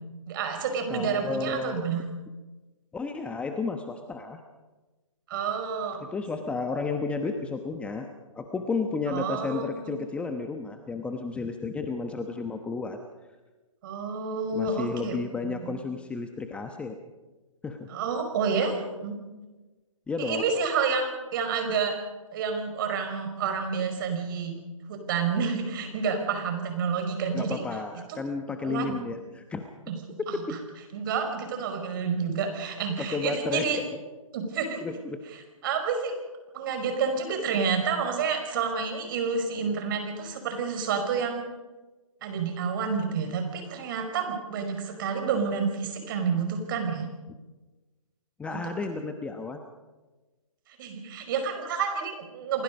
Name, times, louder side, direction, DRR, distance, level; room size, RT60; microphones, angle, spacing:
voice 1, 0.3-2.0 5.3-6.0 9.1-10.0 13.8-15.2 15.5-15.7 17.9-19.1 20.2-21.9 22.3-24.5 24.9-27.6 28.6-28.9 29.9-30.0 30.3-30.4 30.9-33.8 34.3-34.8 35.6-36.2 36.5-41.4 42.2-47.1 48.5-48.6 50.7-52.6, right 5 dB, 40° right, 5 dB, 5.5 m, -29 dB
voice 2, 0.9-1.8 2.9-4.4 6.0-8.1 8.3-13.0 14.5-16.9 17.6-17.9 20.1-20.4 27.3-29.7 33.1-34.0 34.8-35.2 48.4-49.6, left 4 dB, 5° left, 6 dB, 1.0 m, -32 dB
29.5 x 20.5 x 5.3 m, 1.2 s
figure-of-eight pair, 140°, 18 cm